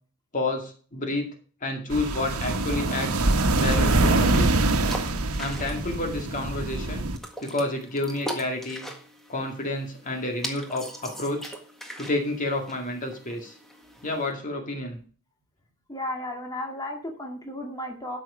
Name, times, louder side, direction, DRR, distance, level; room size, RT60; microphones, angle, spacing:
voice 1, 0.3-1.3 1.6-3.2 3.6-4.6 5.4-7.1 7.4-8.9 9.3-11.5 12.0-13.6 14.0-15.0, left 2 dB, 35° left, 3 dB, 2.1 m, -30 dB
sound 1, 1.9-7.2, right 2 dB, 85° right, 1.2 m, -24 dB
sound 2, 3.8-14.3, equal, ahead, 1.7 m, -41 dB
voice 2, 15.9-18.2, left 1 dB, 15° left, 1 dB, 2.0 m, -34 dB
12.5 x 6.3 x 5.0 m, 0.41 s
head